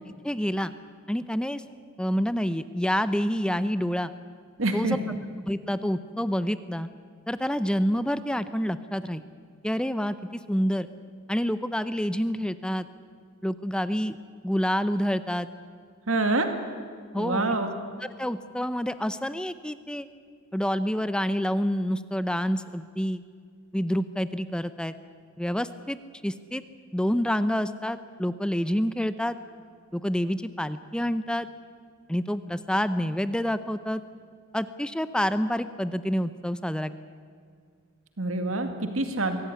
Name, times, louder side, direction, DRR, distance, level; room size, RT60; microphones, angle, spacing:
voice 1, 0.2-0.7 1.1-1.6 2.0-4.1 4.7-5.0 5.4-6.9 7.3-9.2 9.6-10.1 10.5-10.9 11.3-12.9 13.4-14.2 14.4-15.5 17.1-17.4 18.2-20.1 20.5-23.2 23.7-24.9 25.4-26.0 26.2-26.6 26.9-29.4 29.9-31.5 32.1-34.0 34.5-36.9, equal, 5° left, 12 dB, 0.6 m, -27 dB
voice 2, 4.6-5.0 16.1-16.5 17.2-17.7 38.2-39.4, right 2 dB, 80° right, 6 dB, 2.2 m, -26 dB
23.5 x 17.0 x 9.8 m, 2.1 s
head